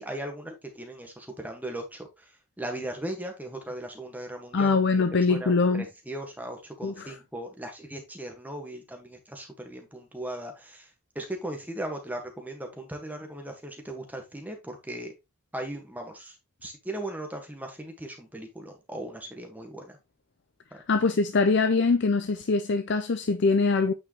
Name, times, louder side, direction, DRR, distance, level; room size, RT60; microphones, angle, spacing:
voice 1, 0.0-2.3 2.6-10.9 11.1-15.1 15.5-16.3 16.6-19.9 20.7-20.8, right 1 dB, 5° right, 1.5 m, -38 dB
voice 2, 4.5-5.9 6.8-7.1 20.9-23.9, left 4 dB, 50° left, 0.6 m, -23 dB
8.8 x 4.9 x 3.0 m
head